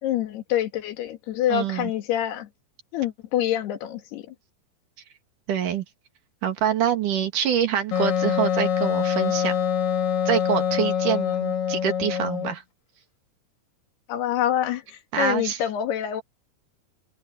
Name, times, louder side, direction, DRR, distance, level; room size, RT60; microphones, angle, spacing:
voice 1, 0.0-2.5 2.9-4.4 14.1-16.2, left 11 dB, 75° left, 3.9 m, -26 dB
voice 2, 1.5-1.9 5.5-5.8 6.4-9.5 10.3-12.6 15.1-15.6, right 9 dB, 55° right, 3.3 m, -25 dB
Wind instrument woodwind instrument, 7.9-12.6, left 8 dB, 55° left, 3.7 m, -24 dB
omnidirectional pair, 4.8 m